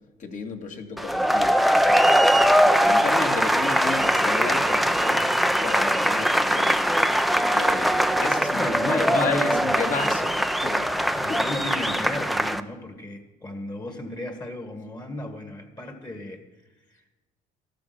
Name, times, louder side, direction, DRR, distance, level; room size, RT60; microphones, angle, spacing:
voice 1, 0.2-1.6 1.9-2.1 2.8-5.3 5.6-7.2 7.5-11.4, left 5 dB, 50° left, 4 dB, 2.0 m, -33 dB
sound 1, 1.0-12.6, equal, ahead, 0.6 m, -21 dB
voice 2, 8.5-9.7 11.2-16.4, left 1 dB, 25° left, 6 dB, 1.7 m, -34 dB
13.5 x 13.0 x 6.0 m, 1.1 s
cardioid pair, 110°, 17 cm